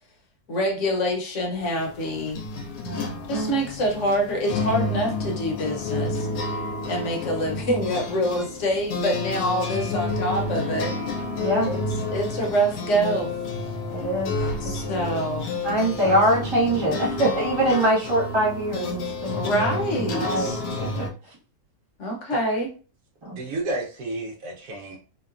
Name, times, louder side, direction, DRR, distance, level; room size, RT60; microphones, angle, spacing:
voice 1, 0.5-2.4 3.3-6.3 6.9-11.0 11.7-11.8 12.1-13.3 14.6-15.5 16.0-16.2 19.3-20.6 22.0-22.7, equal, 60° left, 1 dB, 1.0 m, -26 dB
sound 1, 1.6-21.1, left 3 dB, 90° left, 1.1 m, -30 dB
voice 2, 2.8-3.5 11.4-11.7 13.9-14.4 14.6-15.1 15.6-19.6 19.9-20.5 20.8-21.1 23.2-23.4, right 1 dB, 30° right, -6 dB, 0.5 m, -24 dB
voice 3, 23.3-25.0, right 2 dB, 75° right, -2 dB, 1.1 m, -31 dB
2.9 x 2.1 x 2.4 m, 0.37 s
omnidirectional pair, 1.6 m